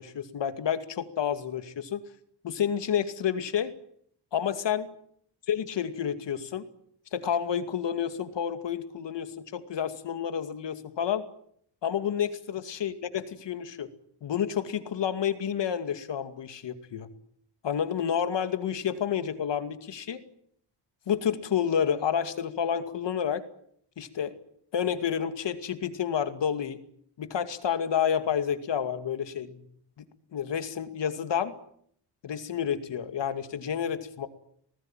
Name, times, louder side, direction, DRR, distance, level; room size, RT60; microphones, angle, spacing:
voice 1, 0.0-2.0 2.4-3.7 4.3-4.9 5.5-6.7 7.1-11.2 11.8-13.9 14.2-17.1 17.6-20.2 21.1-23.4 24.0-24.4 24.7-26.8 27.2-29.7 30.0-30.1 30.3-31.5 32.2-34.3, left 8 dB, 80° left, 9 dB, 2.4 m, -29 dB
28.5 x 19.0 x 9.1 m, 0.66 s
wide cardioid pair, 120°, 43 cm